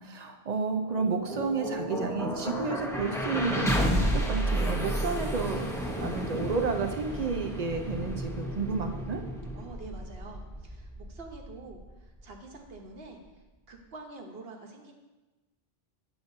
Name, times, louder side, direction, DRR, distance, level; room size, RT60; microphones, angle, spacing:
voice 1, 0.0-5.7 6.0-9.2, right 4 dB, 50° right, 5 dB, 0.6 m, -31 dB
sound 1, 0.7-12.7, equal, 5° left, 0.7 m, -32 dB
voice 2, 9.5-14.9, right 3 dB, 70° right, 2 dB, 1.1 m, -47 dB
8.1 x 6.9 x 2.6 m, 1.1 s
omnidirectional pair, 1.0 m